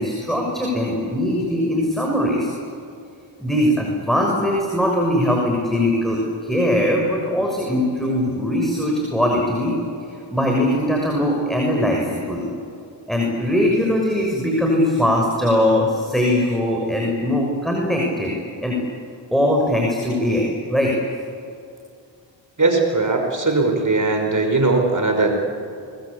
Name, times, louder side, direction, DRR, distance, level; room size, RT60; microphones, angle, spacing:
voice 1, 0.0-2.5 3.4-9.7 10.3-12.5 13.1-18.8 19.3-21.0, left 1 dB, ahead, -1 dB, 6.5 m, -21 dB
voice 2, 22.6-25.3, right 3 dB, 40° right, 3 dB, 5.5 m, -19 dB
26.0 x 22.5 x 8.6 m, 2.4 s
cardioid pair, 45°, 46 cm